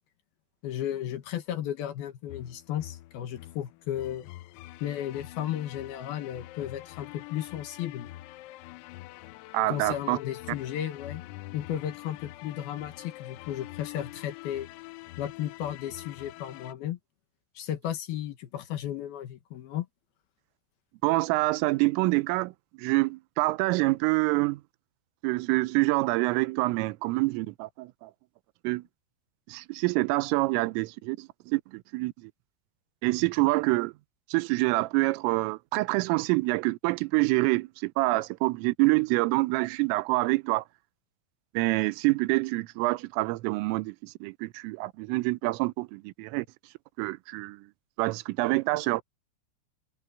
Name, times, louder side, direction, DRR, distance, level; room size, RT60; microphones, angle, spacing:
voice 1, 0.6-4.3 4.8-8.1 9.7-11.2 11.5-14.7 15.2-17.0 17.6-19.9, left 11 dB, 70° left, 2.5 m, -34 dB
sound 1, 2.3-16.7, left 18 dB, 90° left, 3.5 m, -45 dB
voice 2, 9.5-10.2 21.0-22.5 22.8-24.6 25.2-28.1 28.6-28.8 29.5-32.3 33.0-33.9 34.3-40.6 41.5-46.5 47.0-47.6 48.0-49.0, right 23 dB, 85° right, 3.2 m, -26 dB
omnidirectional pair, 5.9 m